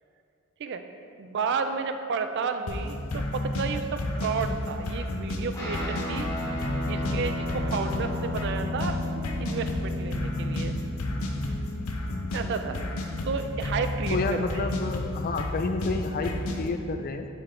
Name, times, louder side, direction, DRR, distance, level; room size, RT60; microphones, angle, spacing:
voice 1, 1.2-6.3 6.8-9.0 9.4-10.7 12.3-12.8 13.3-14.7, right 5 dB, 55° right, 8 dB, 0.4 m, -32 dB
sound 1, 2.7-16.7, left 1 dB, 80° left, 0.6 m, -32 dB
Guitar, 5.5-14.3, left 1 dB, 15° left, 1.2 m, -36 dB
voice 2, 14.1-17.3, left 3 dB, 45° left, 7 dB, 0.4 m, -30 dB
6.9 x 4.3 x 3.7 m, 2.5 s
head